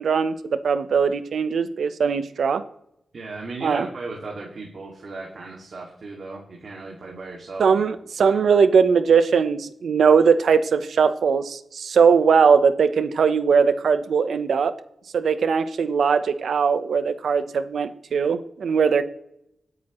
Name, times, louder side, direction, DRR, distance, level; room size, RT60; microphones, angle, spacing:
voice 1, 0.0-2.6 3.6-3.9 7.6-14.7 15.1-19.0, right 6 dB, 80° right, 11 dB, 0.9 m, -20 dB
voice 2, 3.1-7.8 8.2-8.4, right 3 dB, 50° right, -1 dB, 2.4 m, -36 dB
25.5 x 9.4 x 3.2 m, 0.79 s
wide cardioid pair, 140°, 0 cm